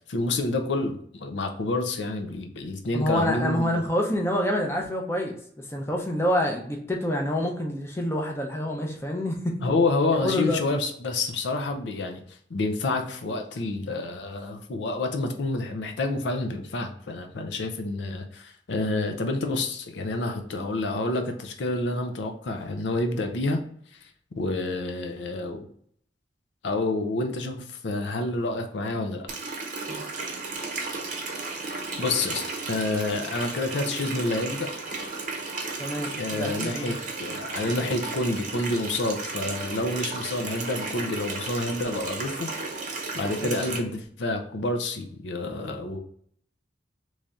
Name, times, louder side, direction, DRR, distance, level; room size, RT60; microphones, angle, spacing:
voice 1, 0.1-3.8 9.6-23.6 23.9-24.1 24.4-25.7 26.6-29.3 32.0-34.7 36.2-42.5 43.1-46.0, left 2 dB, 80° left, 4 dB, 0.5 m, -28 dB
voice 2, 2.9-5.3 5.7-9.5 10.2-10.6 29.9-30.0 35.8-37.0 43.4-43.6, left 1 dB, 15° left, 0 dB, 0.5 m, -27 dB
Water tap faucet, 29.3-43.8, right 3 dB, 45° right, 0.6 m, -34 dB
3.2 x 2.7 x 3.5 m, 0.63 s
head